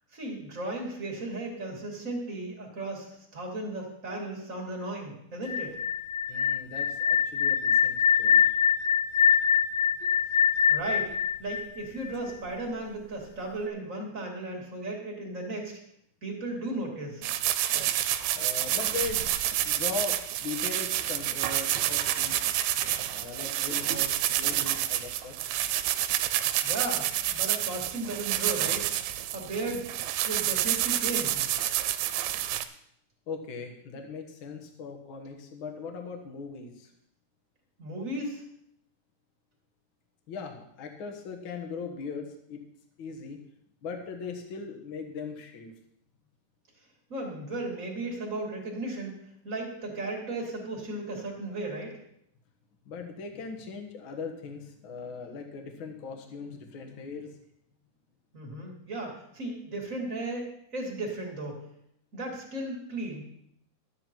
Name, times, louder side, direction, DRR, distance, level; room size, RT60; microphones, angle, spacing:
voice 1, 0.1-5.8 10.7-11.1 11.4-15.8 16.2-17.3 26.6-28.9 29.3-29.9 30.2-31.5 37.8-38.4 47.1-49.1 49.4-52.0 58.3-61.6 62.1-63.3, right 2 dB, 25° right, -1 dB, 2.3 m, -35 dB
sound 1, 5.4-12.3, left 8 dB, 75° left, 2.5 m, -24 dB
voice 2, 6.3-8.5 18.3-19.3 19.6-22.5 23.1-25.4 33.3-36.9 40.3-42.6 43.0-43.4 43.8-45.7 52.8-57.3, left 4 dB, 55° left, 4 dB, 1.4 m, -39 dB
sound 2, 17.2-32.6, right 12 dB, 85° right, 2.4 m, -29 dB
12.5 x 9.9 x 4.6 m, 0.74 s
omnidirectional pair, 4.4 m